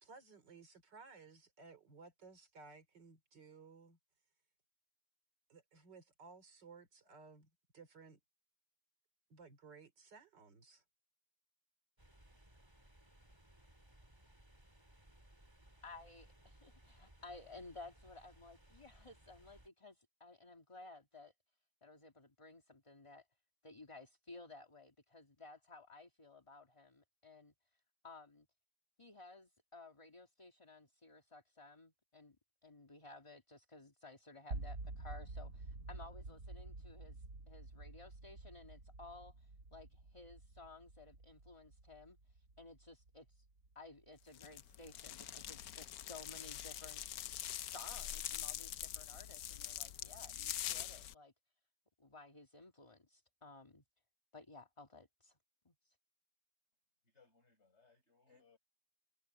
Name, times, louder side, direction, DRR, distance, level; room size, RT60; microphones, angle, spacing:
voice 1, 0.0-4.0 5.5-8.2 9.3-10.8, right 4 dB, 80° right, 3.6 m, -58 dB
sound 1, 12.0-19.7, right 1 dB, 15° right, 3.9 m, -64 dB
voice 2, 15.8-21.3 21.8-23.3 23.6-28.5 29.0-32.4 32.6-43.5 43.8-47.0 47.5-51.3 52.0-53.8 54.3-55.4 55.7-56.0, left 3 dB, 15° left, 2.0 m, -56 dB
sound 2, 34.5-44.5, right 2 dB, 50° right, 4.8 m, -49 dB
sound 3, 44.3-51.1, left 12 dB, 65° left, 1.1 m, -44 dB
voice 3, 57.0-58.6, left 4 dB, 40° left, 7.7 m, -69 dB
omnidirectional pair, 1.9 m